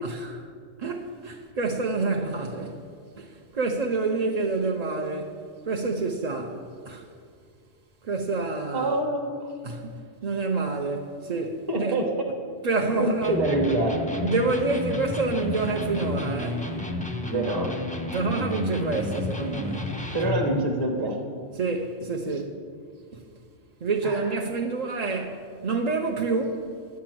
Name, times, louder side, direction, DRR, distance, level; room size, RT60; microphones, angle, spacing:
voice 1, 0.0-0.4 0.8-2.8 3.2-7.0 8.0-8.9 9.6-12.0 12.6-13.4 14.2-16.7 18.1-20.0 21.5-22.6 23.1-23.2 23.8-26.7, right 3 dB, 45° right, 0.5 m, -28 dB
voice 2, 8.7-9.4 11.7-12.1 13.0-14.0 17.3-17.7 20.1-21.3 24.0-24.2, right 2 dB, 20° right, 1.0 m, -25 dB
Electric guitar, 13.2-20.5, left 2 dB, 10° left, 0.6 m, -31 dB
10.5 x 5.9 x 7.6 m
omnidirectional pair, 1.2 m